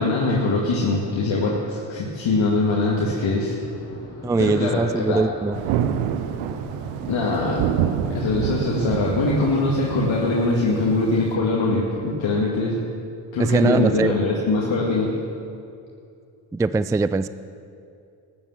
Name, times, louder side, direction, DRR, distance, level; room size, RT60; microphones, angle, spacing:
voice 1, 0.0-3.5 4.4-5.2 7.1-7.7 8.1-12.8 13.3-15.1, left 2 dB, 65° left, -4 dB, 2.2 m, -22 dB
sound 1, 3.6-9.9, left 2 dB, 30° left, 4.2 m, -40 dB
voice 2, 4.2-5.6 13.4-14.1 16.5-17.3, right 3 dB, 10° right, 14 dB, 0.3 m, -21 dB
Thunder, 5.5-11.3, right 9 dB, 85° right, 0.8 m, -28 dB
13.0 x 11.0 x 7.5 m, 2.5 s
hypercardioid pair, 50°, 49 cm